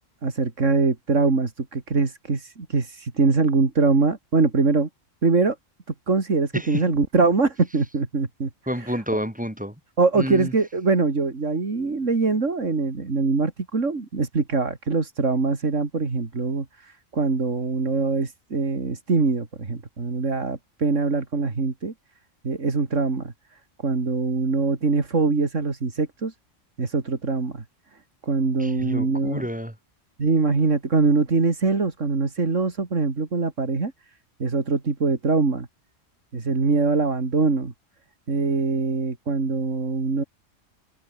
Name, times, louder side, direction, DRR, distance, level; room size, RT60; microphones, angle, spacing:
voice 1, 0.2-4.9 5.2-5.6 6.1-8.5 8.8-9.0 10.0-21.9 22.4-23.3 23.8-26.3 26.8-27.6 28.3-29.4 30.2-33.9 34.4-35.7 36.3-37.7 38.3-40.2, right 4 dB, 75° right, 3.1 m, -23 dB
voice 2, 8.7-9.7 10.1-10.5 28.6-29.7, equal, 5° right, 2.8 m, -29 dB
omnidirectional pair, 1.3 m